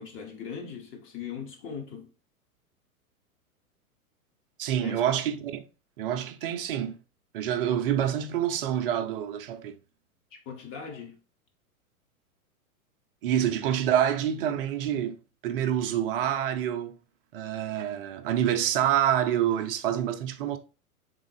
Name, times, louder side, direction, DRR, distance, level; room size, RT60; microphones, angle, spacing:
voice 1, 0.0-2.1 4.8-5.0 10.3-11.2, left 6 dB, 30° left, 1.1 m, -39 dB
voice 2, 4.6-5.6 6.0-7.0 7.3-9.8 13.2-15.2 15.4-17.0 17.3-20.6, right 10 dB, 40° right, 0.5 m, -27 dB
3.7 x 3.6 x 3.3 m
figure-of-eight pair, 105°, 44 cm